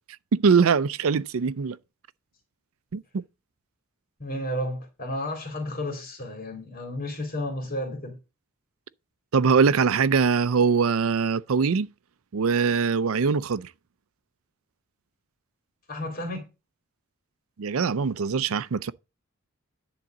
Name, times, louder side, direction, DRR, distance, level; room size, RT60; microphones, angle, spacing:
voice 1, 0.3-1.8 2.9-3.2 9.3-11.9 12.3-13.7 17.6-18.9, right 5 dB, 75° right, 0.5 m, -22 dB
voice 2, 4.2-8.2 15.9-16.5, left 1 dB, 40° left, 2.5 m, -32 dB
10.5 x 4.0 x 7.1 m
head